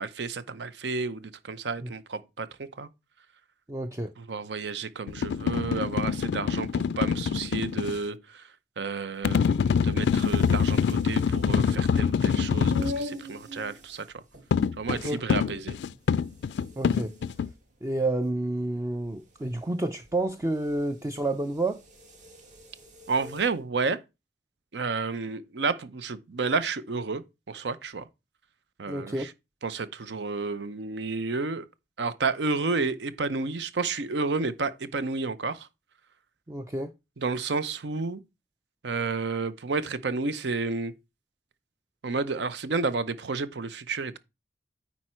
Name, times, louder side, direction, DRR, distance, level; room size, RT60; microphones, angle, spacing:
voice 1, 0.0-2.9 4.2-8.4 8.8-14.0 14.8-15.8 23.1-24.0 24.7-27.2 27.5-28.1 28.8-29.3 29.6-31.6 32.0-35.7 37.2-38.2 38.8-40.9 42.0-44.2, right 4 dB, 70° right, 0.7 m, -31 dB
voice 2, 3.7-4.1 15.0-15.2 16.8-17.1 17.8-21.8 28.9-29.3 36.5-36.9, right 2 dB, 15° right, 0.4 m, -29 dB
sound 1, 5.1-8.0 9.2-13.0 14.5-17.5, left 6 dB, 70° left, 0.3 m, -25 dB
sound 2, 10.0-23.6, left 1 dB, 45° right, 1.7 m, -44 dB
9.2 x 4.3 x 4.3 m
head